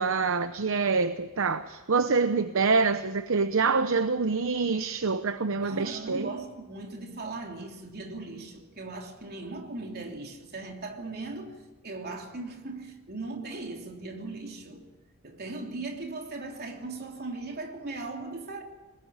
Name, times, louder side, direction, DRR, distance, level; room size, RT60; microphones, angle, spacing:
voice 1, 0.0-6.3, right 4 dB, 65° right, 0.8 m, -26 dB
voice 2, 5.5-14.9 15.2-18.6, right 3 dB, 50° right, 3.3 m, -38 dB
22.0 x 20.0 x 8.8 m
head